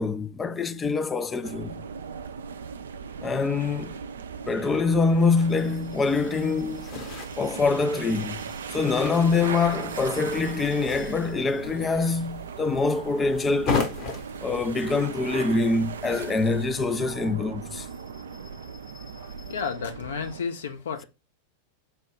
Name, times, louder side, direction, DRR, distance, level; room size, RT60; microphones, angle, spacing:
voice 1, 0.0-1.8 3.2-3.9 4.5-6.9 7.4-14.0 14.4-17.9 18.9-19.3, left 4 dB, 15° left, 0.3 m, -25 dB
sound 1, 1.4-20.4, right 6 dB, 65° right, 0.3 m, -38 dB
sound 2, 6.2-16.6, left 4 dB, 40° left, 1.0 m, -37 dB
voice 2, 19.5-21.0, left 6 dB, 65° left, 0.7 m, -31 dB
4.5 x 2.2 x 4.7 m
figure-of-eight pair, 90°, 0 cm